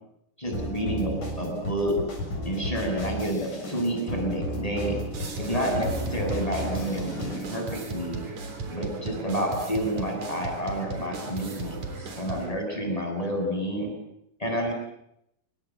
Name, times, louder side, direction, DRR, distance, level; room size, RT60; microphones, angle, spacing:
voice 1, 0.4-1.9 2.4-5.0 5.4-8.2 8.7-13.9 14.4-14.7, right 1 dB, 10° left, 2 dB, 7.9 m, -29 dB
sound 1, 0.5-7.6, equal, 55° left, 8.7 m, -34 dB
sound 2, 5.1-12.5, right 4 dB, 50° right, 4.7 m, -36 dB
27.5 x 25.0 x 7.7 m, 0.79 s
omnidirectional pair, 4.3 m